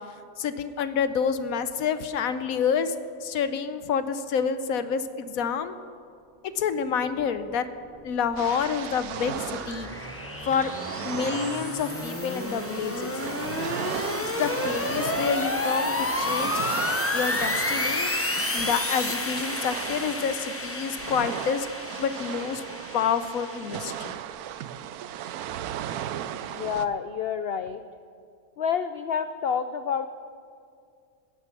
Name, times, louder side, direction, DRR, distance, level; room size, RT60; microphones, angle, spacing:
voice 1, 0.4-2.9 3.2-5.8 6.4-7.7 8.0-9.9 10.5-10.7 11.0-13.1 14.2-18.1 18.5-21.7 22.0-22.6 22.9-24.2, left 7 dB, 70° left, 12 dB, 1.1 m, -28 dB
sound 1, 8.1-24.1, left 2 dB, 20° left, 0.4 m, -31 dB
sound 2, 8.4-26.9, right 10 dB, 80° right, 1.1 m, -37 dB
sound 3, 9.9-19.7, right 1 dB, 25° right, 1.9 m, -48 dB
voice 2, 26.5-27.8 28.6-30.1, left 7 dB, 90° left, 10 dB, 0.5 m, -28 dB
18.0 x 10.5 x 6.0 m, 2.3 s
omnidirectional pair, 1.6 m